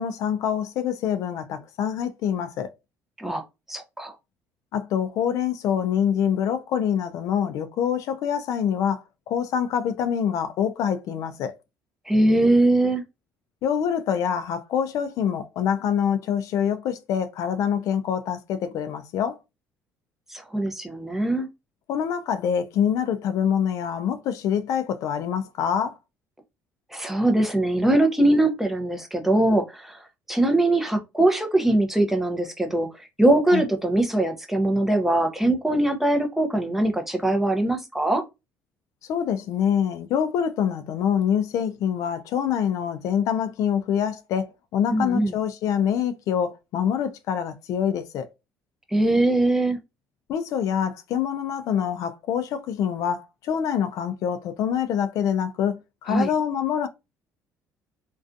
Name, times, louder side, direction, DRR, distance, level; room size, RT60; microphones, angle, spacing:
voice 1, 0.0-2.7 4.7-11.5 13.6-19.4 21.9-26.0 33.5-33.6 39.1-44.5 44.7-48.3 50.3-55.8 56.0-56.9, left 8 dB, 65° left, 0.3 m, -25 dB
voice 2, 3.7-4.1 12.1-13.0 20.3-21.5 26.9-30.0 30.3-32.9 33.2-38.2 44.9-45.3 48.9-49.8 56.1-56.3, right 1 dB, 5° right, 0.5 m, -21 dB
2.5 x 2.2 x 2.4 m
cardioid pair, 115°, 6 cm